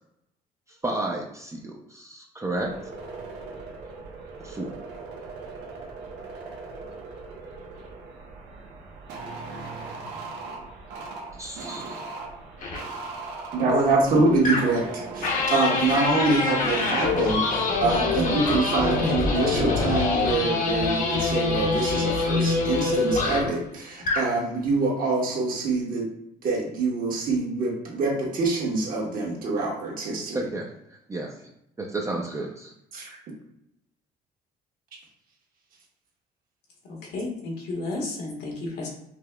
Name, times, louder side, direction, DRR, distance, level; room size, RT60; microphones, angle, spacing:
voice 1, 0.8-2.7 4.4-4.7 11.4-12.0 30.3-30.7 31.1-31.3 31.8-32.7, right 2 dB, 20° right, 0 dB, 0.4 m, -31 dB
sound 1, 2.5-19.5, right 3 dB, 85° right, 0.8 m, -38 dB
sound 2, 12.6-12.8 14.4-14.8 15.2-23.6 24.0-24.3, left 3 dB, 50° left, 0.8 m, -25 dB
voice 2, 13.5-14.8 15.1-26.1 26.4-30.4 32.9-33.1, right 3 dB, 60° right, -3 dB, 1.3 m, -25 dB
voice 3, 36.8-38.9, left 2 dB, 75° left, -1 dB, 1.2 m, -32 dB
5.0 x 2.8 x 2.3 m, 0.79 s
cardioid pair, 110°, 17 cm